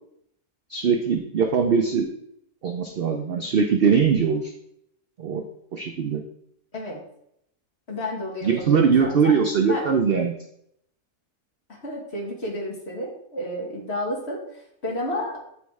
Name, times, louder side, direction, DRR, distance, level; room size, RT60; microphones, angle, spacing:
voice 1, 0.7-2.1 2.6-4.5 5.2-5.4 5.7-6.2 8.4-10.3, right 6 dB, 75° right, 4 dB, 0.5 m, -21 dB
voice 2, 6.7-7.0 7.9-9.3 9.7-9.9 11.7-15.4, left 1 dB, 45° left, -1 dB, 1.8 m, -31 dB
8.4 x 3.1 x 4.7 m, 0.74 s
omnidirectional pair, 1.7 m